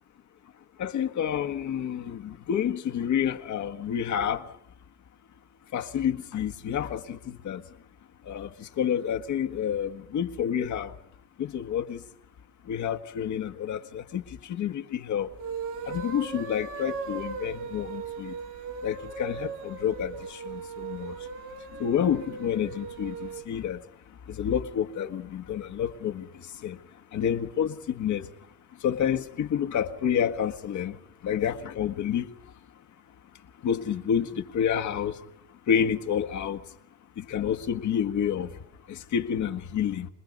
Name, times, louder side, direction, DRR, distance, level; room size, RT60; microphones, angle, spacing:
voice 1, 0.8-4.5 5.7-7.6 8.2-10.9 11.4-12.0 12.6-15.3 15.8-18.4 18.8-21.2 21.8-23.8 24.3-26.8 27.1-28.3 28.8-31.0 31.2-32.3 33.6-35.2 35.7-36.6 37.2-38.5 38.9-40.1, left 8 dB, 70° left, 1.6 m, -29 dB
sound 1, 15.3-23.5, right 5 dB, 80° right, 4.4 m, -38 dB
27.0 x 20.5 x 5.4 m
cardioid pair, 90°, 30 cm